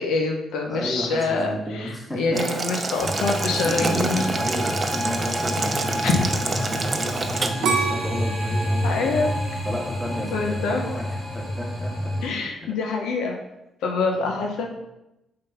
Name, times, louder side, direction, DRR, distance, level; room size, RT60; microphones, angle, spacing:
voice 1, 0.0-4.3 6.0-6.2 8.8-9.3 10.3-10.9 12.2-13.4 13.8-14.7, left 3 dB, 85° left, 3 dB, 0.8 m, -25 dB
voice 2, 0.7-2.4 3.5-9.2 9.7-11.0 11.3-12.5 14.2-14.5, equal, 10° left, -2 dB, 1.8 m, -32 dB
Boiling, 2.3-7.5, right 3 dB, 30° right, 0.7 m, -28 dB
sound 1, 3.0-12.3, equal, 55° left, 2.4 m, -28 dB
sound 2, 7.6-10.5 11.0-11.5, right 5 dB, 75° right, 0.9 m, -28 dB
5.2 x 3.9 x 5.6 m, 0.92 s
cardioid pair, 90°, 0 cm